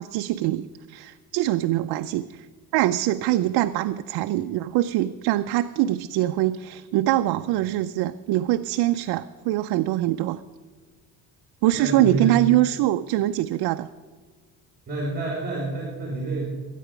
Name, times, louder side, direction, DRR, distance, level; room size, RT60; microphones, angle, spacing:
voice 1, 0.0-2.5 2.7-10.4 11.6-13.9, right 14 dB, 75° right, 8 dB, 0.6 m, -23 dB
voice 2, 11.7-12.3 14.9-16.4, right 3 dB, 25° right, -3 dB, 3.8 m, -28 dB
21.5 x 9.2 x 5.0 m, 1.5 s
cardioid pair, 130°, 39 cm